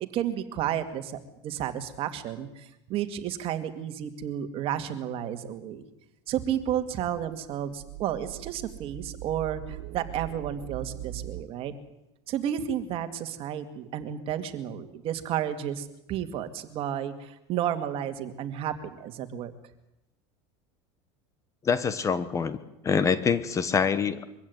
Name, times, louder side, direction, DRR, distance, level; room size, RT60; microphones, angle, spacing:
voice 1, 0.0-5.8 6.3-11.7 12.3-19.5, right 10 dB, 45° right, 8 dB, 2.3 m, -32 dB
sound 1, 6.3-11.4, right 14 dB, 70° right, 0.8 m, -41 dB
voice 2, 21.6-22.6 22.8-24.2, left 6 dB, 25° left, 14 dB, 1.2 m, -25 dB
23.5 x 15.5 x 9.5 m, 0.88 s
supercardioid pair, 140°, 13 cm